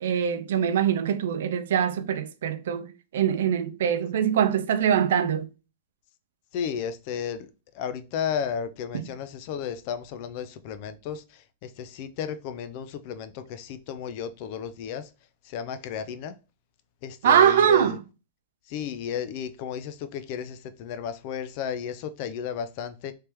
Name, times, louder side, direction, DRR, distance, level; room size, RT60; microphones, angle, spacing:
voice 1, 0.0-5.5 8.9-9.1 17.2-18.0, right 9 dB, 75° right, 0.5 m, -23 dB
voice 2, 6.5-15.1 15.4-16.4 17.0-18.0 18.7-23.1, left 8 dB, 50° left, 0.5 m, -33 dB
3.3 x 2.9 x 3.3 m
hypercardioid pair, 125°, 0 cm